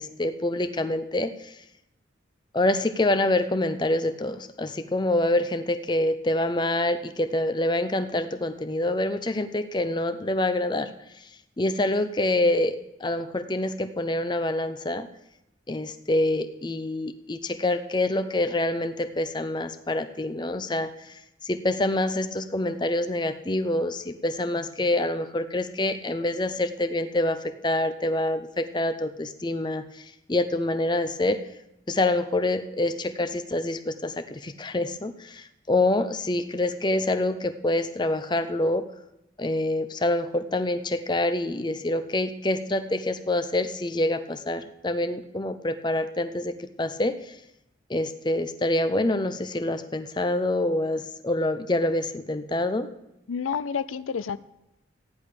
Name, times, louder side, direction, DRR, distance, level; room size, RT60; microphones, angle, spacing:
voice 1, 0.0-1.6 2.5-10.9 11.2-11.3 11.6-15.1 15.7-31.4 31.9-38.9 39.4-47.4 47.9-52.9, left 1 dB, 20° left, 9 dB, 0.6 m, -26 dB
voice 2, 53.3-54.4, left 6 dB, 90° left, 14 dB, 0.5 m, -29 dB
14.0 x 10.5 x 5.0 m, 0.87 s
head